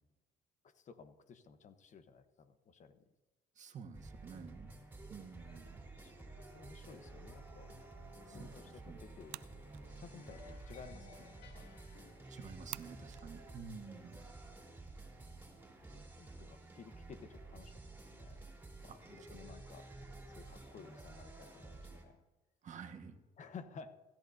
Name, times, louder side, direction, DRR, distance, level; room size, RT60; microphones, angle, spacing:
voice 1, 0.6-3.0 5.9-7.9 8.3-9.4 10.0-11.7 14.4-14.7 15.9-18.5 18.8-19.9 20.3-22.2 23.4-24.0, left 5 dB, 45° left, 9 dB, 1.1 m, -55 dB
voice 2, 3.6-4.7 5.1-5.8 8.3-8.5 8.9-9.0 12.3-14.3 18.9-19.0 22.6-23.2, right 6 dB, 45° right, 5 dB, 1.5 m, -50 dB
sound 1, 3.9-22.0, right 2 dB, 10° right, 3.9 m, -52 dB
sound 2, 7.1-12.6, left 3 dB, 85° left, 2.8 m, -60 dB
sound 3, 7.9-15.8, right 18 dB, 80° right, 0.4 m, -56 dB
27.5 x 13.5 x 2.7 m, 1.2 s
cardioid pair, 110°, 17 cm